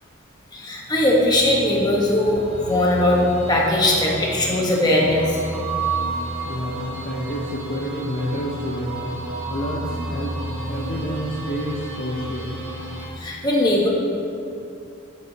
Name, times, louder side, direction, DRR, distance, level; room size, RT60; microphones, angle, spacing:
voice 1, 0.5-3.2 3.5-5.4 13.2-13.9, left 1 dB, 20° left, -3 dB, 1.1 m, -19 dB
sound 1, 0.8-13.1, right 2 dB, 90° right, 1.3 m, -31 dB
voice 2, 6.4-9.1 9.5-10.4 10.7-12.6, equal, 45° left, -2 dB, 0.6 m, -29 dB
11.0 x 7.1 x 2.8 m, 2.6 s
head